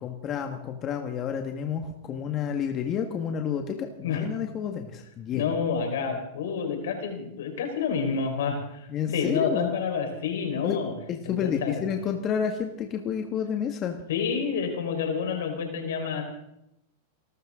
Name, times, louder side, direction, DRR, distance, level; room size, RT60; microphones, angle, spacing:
voice 1, 0.0-5.5 8.9-9.7 10.6-10.8 11.1-14.0, left 8 dB, 35° left, 4 dB, 1.7 m, -30 dB
voice 2, 5.3-8.9 9.1-10.9 11.2-11.8 14.1-16.2, left 6 dB, 75° left, 4 dB, 4.6 m, -29 dB
28.0 x 13.5 x 3.8 m, 0.84 s
hypercardioid pair, 115°, 0 cm